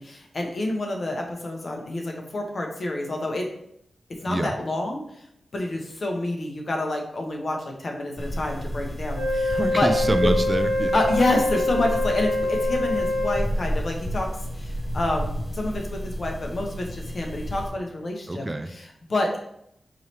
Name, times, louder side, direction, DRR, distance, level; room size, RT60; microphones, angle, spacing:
voice 1, 0.0-3.5 4.2-5.0 5.5-9.9 10.9-14.3 14.5-19.4, left 2 dB, 55° left, 1 dB, 0.9 m, -28 dB
sound 1, 8.2-17.7, equal, 15° left, 0.8 m, -31 dB
Wind instrument woodwind instrument, 9.2-13.5, left 1 dB, 85° left, 0.9 m, -25 dB
voice 2, 9.6-10.9 18.3-18.7, right 1 dB, 25° right, 8 dB, 0.3 m, -26 dB
4.7 x 3.1 x 2.8 m, 0.74 s
cardioid pair, 65°, 0 cm